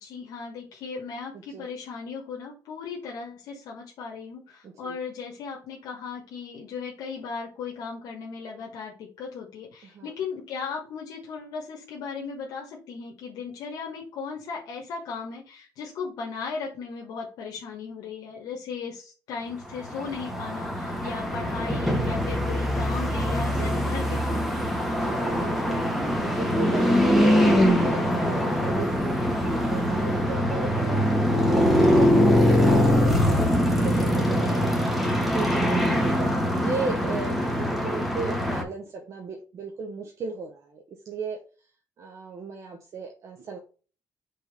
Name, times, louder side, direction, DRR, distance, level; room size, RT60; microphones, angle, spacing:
voice 1, 0.0-24.6, left 5 dB, 85° left, -1 dB, 1.4 m, -37 dB
voice 2, 4.6-5.0 9.8-10.1 20.9-21.1 23.6-23.8 24.9-25.9 26.3-34.9 35.3-41.4 42.0-43.6, right 4 dB, 55° right, 2 dB, 1.1 m, -36 dB
sound 1, 19.8-38.6, equal, ahead, 1.7 m, -23 dB
5.6 x 3.7 x 5.1 m, 0.36 s
cardioid pair, 105°, 6 cm